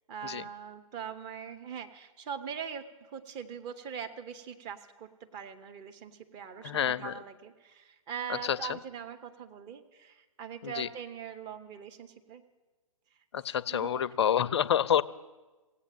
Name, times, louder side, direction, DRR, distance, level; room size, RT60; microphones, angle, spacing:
voice 1, 0.1-12.4 13.7-14.2, right 8 dB, 20° right, 7 dB, 0.7 m, -42 dB
voice 2, 6.6-7.1 8.4-8.6 10.6-10.9 13.3-15.0, left 9 dB, 45° left, 17 dB, 0.5 m, -28 dB
17.0 x 8.4 x 7.3 m, 1.2 s
figure-of-eight pair, 125°, 19 cm